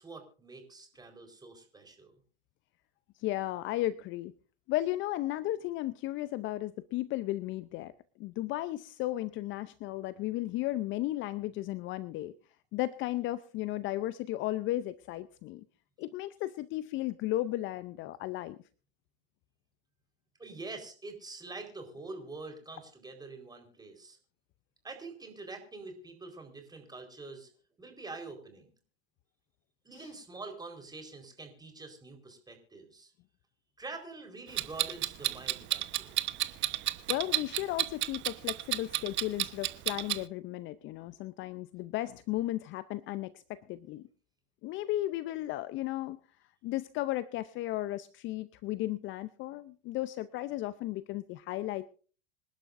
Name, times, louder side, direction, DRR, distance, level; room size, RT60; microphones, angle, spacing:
voice 1, 0.0-2.1 20.4-24.2 24.8-27.5 27.8-28.7 29.8-33.1 33.8-36.2, right 3 dB, 10° right, 5 dB, 4.4 m, -45 dB
voice 2, 3.2-4.3 4.7-7.9 8.2-12.3 12.7-15.6 16.0-18.6 30.0-30.1 37.1-44.0 44.6-46.2 46.6-51.9, left 15 dB, 35° left, 16 dB, 0.6 m, -35 dB
Clock, 34.6-40.2, right 15 dB, 35° right, 1.1 m, -31 dB
26.5 x 11.5 x 2.6 m, 0.39 s
hypercardioid pair, 105°, 34 cm